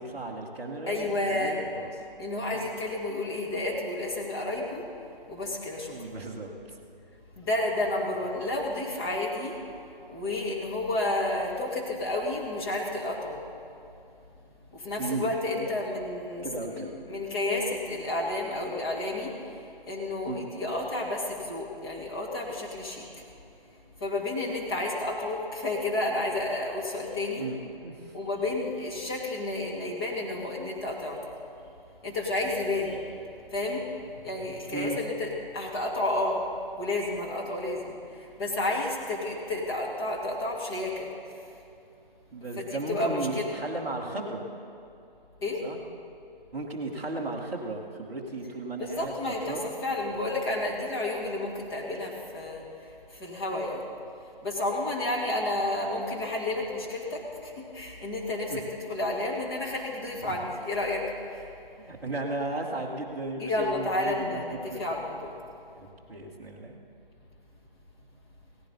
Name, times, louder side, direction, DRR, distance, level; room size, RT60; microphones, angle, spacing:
voice 1, 0.0-1.9 2.5-2.7 5.9-6.8 15.0-15.3 15.6-15.8 16.4-16.9 20.3-20.4 27.4-28.1 34.7-35.0 42.3-44.4 45.6-45.8 46.5-49.1 49.5-49.7 58.5-58.6 60.2-60.4 61.9-64.4 64.7-64.8 65.8-66.7, right 2 dB, 5° right, -6 dB, 1.1 m, -35 dB
voice 2, 0.9-1.6 2.2-4.9 5.3-5.9 7.4-13.4 14.7-23.1 24.0-27.5 28.1-31.3 32.0-33.1 33.5-33.9 34.2-36.5 36.8-41.1 42.6-43.5 45.4-45.7 48.8-53.9 54.4-61.5 63.4-65.3, left 2 dB, 25° left, -4 dB, 2.4 m, -31 dB
17.5 x 15.5 x 4.2 m, 2.7 s
figure-of-eight pair, 150°, 29 cm